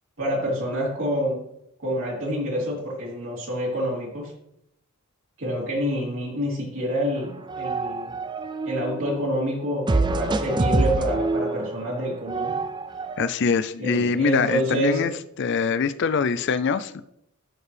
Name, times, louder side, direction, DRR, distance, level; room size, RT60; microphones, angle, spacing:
voice 1, 0.2-1.4 1.8-4.3 5.4-8.1 8.6-12.6 13.8-15.1, equal, 65° right, -4 dB, 3.3 m, -27 dB
sound 1, 7.2-9.3 9.9-13.3, right 3 dB, 20° right, 0.4 m, -26 dB
voice 2, 13.2-15.1 15.4-17.0, left 5 dB, 55° left, 14 dB, 0.4 m, -23 dB
13.0 x 4.7 x 3.3 m, 0.78 s
head